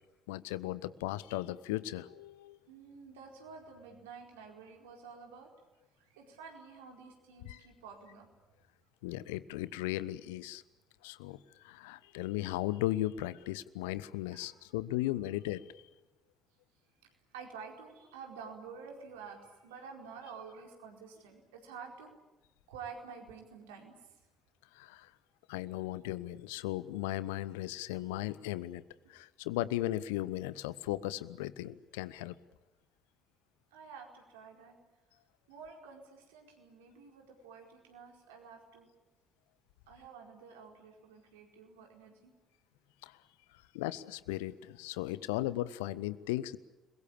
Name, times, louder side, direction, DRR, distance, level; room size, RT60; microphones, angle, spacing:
voice 1, 0.3-2.6 7.4-7.6 9.0-10.6 11.0-15.8 24.7-25.1 25.5-28.8 29.1-32.4 43.0-43.2 43.7-46.6, left 16 dB, 70° left, 17 dB, 0.9 m, -36 dB
voice 2, 2.7-5.5 6.0-8.3 14.3-14.7 17.3-22.1 22.7-23.9 33.7-34.8 35.5-38.9 39.9-42.3, right 5 dB, 75° right, 2 dB, 4.6 m, -50 dB
30.0 x 22.0 x 8.6 m, 1.1 s
figure-of-eight pair, 50°, 0 cm